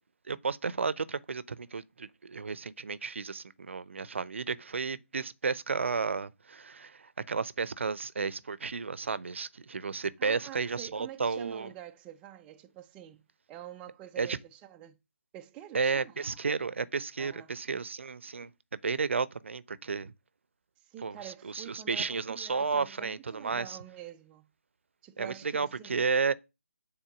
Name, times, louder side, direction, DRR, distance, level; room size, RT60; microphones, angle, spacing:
voice 1, 0.2-11.7 14.2-14.4 15.7-20.1 21.0-23.8 25.2-26.3, right 5 dB, 55° right, 0.7 m, -32 dB
voice 2, 10.2-15.0 15.3-16.4 17.2-17.6 20.8-24.5 25.0-26.0, right 12 dB, 10° right, 0.5 m, -47 dB
8.9 x 4.3 x 7.0 m
figure-of-eight pair, 150°, 8 cm